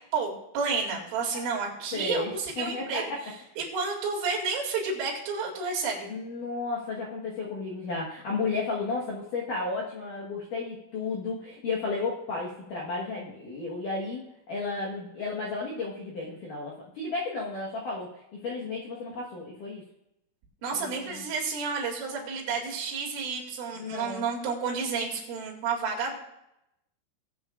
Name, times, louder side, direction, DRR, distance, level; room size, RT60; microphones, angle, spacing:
voice 1, 0.1-3.0 3.6-6.1 20.6-26.2, right 5 dB, 75° right, -2 dB, 4.8 m, -31 dB
voice 2, 1.9-3.2 3.5-3.6 6.1-14.2 14.5-19.8 20.7-21.3 23.8-24.3, left 3 dB, 75° left, -4 dB, 1.9 m, -33 dB
20.0 x 8.4 x 2.5 m, 0.85 s
omnidirectional pair, 5.9 m